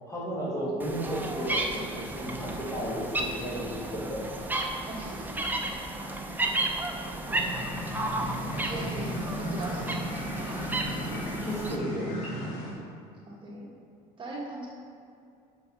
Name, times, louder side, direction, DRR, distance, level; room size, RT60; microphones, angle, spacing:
voice 1, 0.1-4.2 11.0-12.4, equal, 20° left, -5 dB, 2.0 m, -34 dB
sound 1, 0.8-11.8, right 2 dB, 10° right, 0.7 m, -33 dB
voice 2, 4.8-5.3 6.4-6.7 7.0-7.6 8.6-10.7 13.3-13.8 14.2-14.7, right 2 dB, 30° right, -4 dB, 1.6 m, -40 dB
sound 2, 7.3-12.7, equal, 90° left, 1.9 m, -35 dB
6.6 x 5.8 x 5.3 m, 2.5 s
cardioid pair, 105°, 16 cm